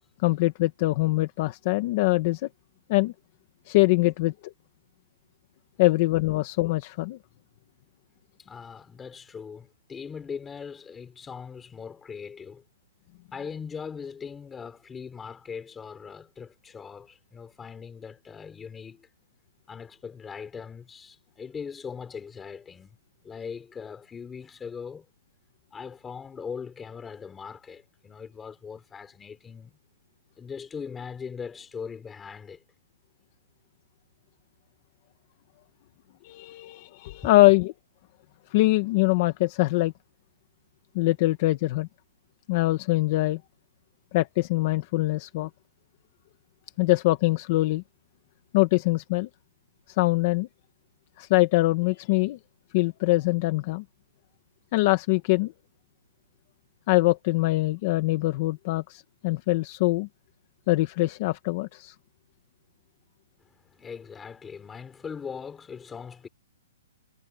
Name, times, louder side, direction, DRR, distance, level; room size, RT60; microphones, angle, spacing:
voice 1, 0.2-2.5 2.9-3.1 3.7-4.3 5.8-7.2 36.2-37.7 38.5-39.9 40.9-41.9 42.5-43.4 44.1-45.5 46.8-47.8 48.5-49.3 49.9-50.5 51.2-52.4 52.7-53.8 54.7-55.5 56.9-60.1 60.7-61.9, left 20 dB, 30° left, 1.1 m, -23 dB
voice 2, 8.4-12.6 13.3-19.1 19.7-25.1 25.7-29.7 30.4-32.6 37.2-37.5 63.4-66.3, left 6 dB, 5° left, 3.9 m, -40 dB
hypercardioid pair, 180°, 0 cm